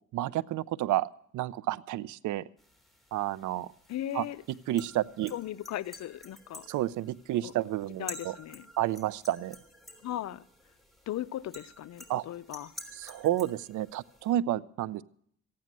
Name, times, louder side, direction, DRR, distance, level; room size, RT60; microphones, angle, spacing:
voice 1, 0.1-2.5 3.1-3.7 4.1-4.3 4.7-5.3 6.7-8.4 8.8-9.6 12.1-12.3 12.9-15.0, right 13 dB, 75° right, 20 dB, 0.5 m, -30 dB
sound 1, 2.6-14.3, left 1 dB, ahead, 3.3 m, -50 dB
voice 2, 3.9-4.4 5.3-6.7 7.4-7.5 8.0-8.7 10.0-10.4 11.1-12.7, left 12 dB, 65° left, 16 dB, 0.6 m, -37 dB
15.0 x 9.5 x 7.4 m, 0.66 s
cardioid pair, 90°, 30 cm